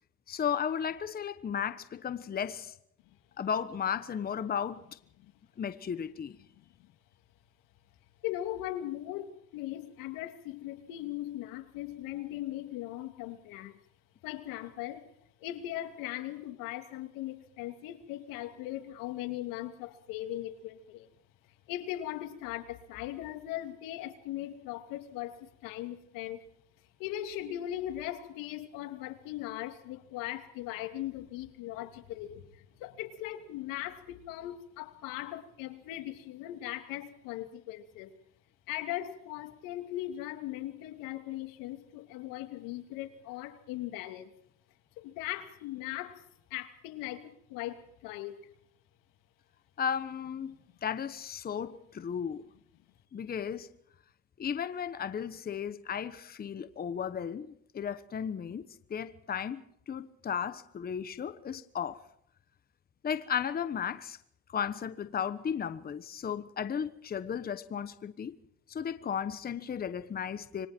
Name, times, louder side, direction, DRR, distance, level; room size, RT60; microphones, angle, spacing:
voice 1, 0.3-2.7 3.4-4.9 5.6-6.4 49.8-50.6 50.8-52.4 53.1-53.7 54.4-58.6 58.9-62.0 63.0-64.2 64.5-68.3 68.7-70.7, left 7 dB, 30° left, 1.1 m, -34 dB
voice 2, 6.6-6.9 8.2-13.8 14.2-15.1 15.4-21.1 21.7-26.4 27.0-38.1 38.7-44.3 45.0-46.2 46.5-48.4, left 14 dB, 90° left, 2.9 m, -39 dB
27.0 x 24.5 x 4.5 m
cardioid pair, 125°, 32 cm